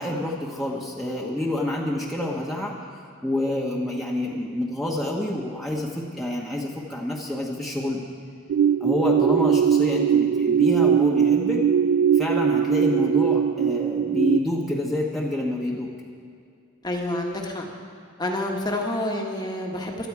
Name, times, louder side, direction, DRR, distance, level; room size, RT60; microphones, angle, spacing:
voice 1, 0.0-2.8 3.2-8.1 8.8-11.6 12.1-15.9, left 1 dB, ahead, -5 dB, 1.1 m, -28 dB
sound 1, 8.5-14.4, right 8 dB, 70° right, 0.3 m, -20 dB
voice 2, 16.8-17.6 18.2-20.1, left 1 dB, 20° left, 1 dB, 1.4 m, -28 dB
17.0 x 12.5 x 4.8 m, 2.3 s
head